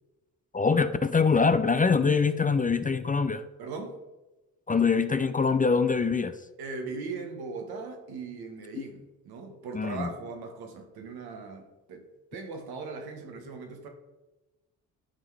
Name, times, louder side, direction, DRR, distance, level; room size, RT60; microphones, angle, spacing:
voice 1, 0.5-3.4 4.7-6.3 9.7-10.1, left 5 dB, 20° left, 11 dB, 0.5 m, -24 dB
voice 2, 3.6-4.0 6.6-13.9, right 4 dB, 75° right, 4 dB, 1.4 m, -39 dB
10.5 x 3.8 x 4.7 m, 1.1 s
hypercardioid pair, 50°, 38 cm